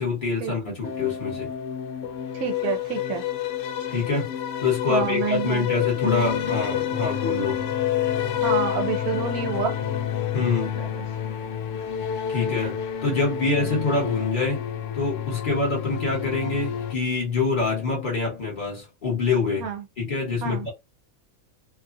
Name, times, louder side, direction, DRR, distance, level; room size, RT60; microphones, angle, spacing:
voice 1, 0.0-1.5 3.9-4.3 4.6-7.7 10.3-10.8 12.3-14.6 14.9-19.7 20.0-20.7, left 4 dB, 35° left, 1.4 m, -25 dB
sound 1, 0.8-16.9, left 9 dB, 65° left, 0.8 m, -28 dB
voice 2, 2.3-3.2 4.9-5.7 8.4-9.8 10.6-11.0 13.6-13.7 19.6-19.8 20.4-20.7, right 8 dB, 75° right, 1.1 m, -28 dB
2.7 x 2.4 x 2.5 m
omnidirectional pair, 1.5 m